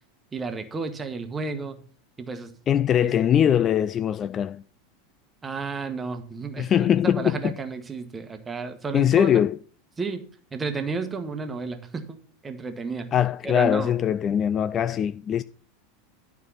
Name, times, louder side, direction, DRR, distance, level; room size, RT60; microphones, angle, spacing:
voice 1, 0.3-1.8 2.2-2.6 3.0-3.1 5.4-9.3 10.0-10.2 10.5-13.1 13.4-13.9, right 4 dB, 15° right, 1.3 m, -32 dB
voice 2, 2.7-4.6 6.6-7.5 8.9-9.6 13.1-15.4, left 9 dB, 30° left, 0.3 m, -22 dB
11.5 x 4.8 x 5.7 m
figure-of-eight pair, 85°, 0 cm